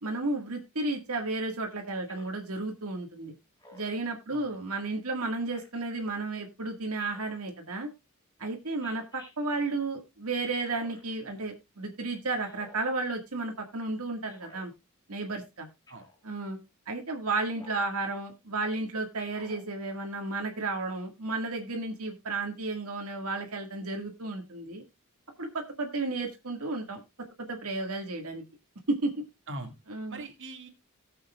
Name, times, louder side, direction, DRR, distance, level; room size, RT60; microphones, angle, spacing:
voice 1, 0.0-3.3 3.7-7.9 8.4-14.7 15.1-15.7 16.2-16.6 16.9-24.8 25.4-27.0 27.5-28.4 28.9-29.2 29.9-30.2, right 3 dB, 85° right, 2 dB, 1.8 m, -33 dB
Speech synthesizer, 2.1-2.4 3.6-4.1 5.5-5.8 7.0-7.4 8.8-9.3 10.6-11.1 12.4-13.0 14.2-14.6 15.9-16.2 17.5-17.9 19.2-19.6, left 2 dB, 20° left, 2.1 m, -53 dB
voice 2, 4.3-4.6 15.9-16.1 29.5-29.7 30.1-30.7, right 2 dB, 60° right, 4 dB, 2.1 m, -41 dB
18.5 x 7.1 x 2.4 m, 0.24 s
head